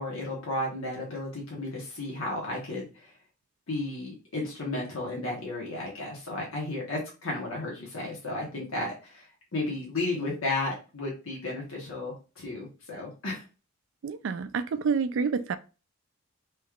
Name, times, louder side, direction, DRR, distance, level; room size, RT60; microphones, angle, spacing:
voice 1, 0.0-3.1 3.7-13.4, left 2 dB, 85° left, 1.1 m, -33 dB
voice 2, 14.0-15.6, right 5 dB, 65° right, 0.3 m, -28 dB
3.3 x 3.1 x 2.4 m
head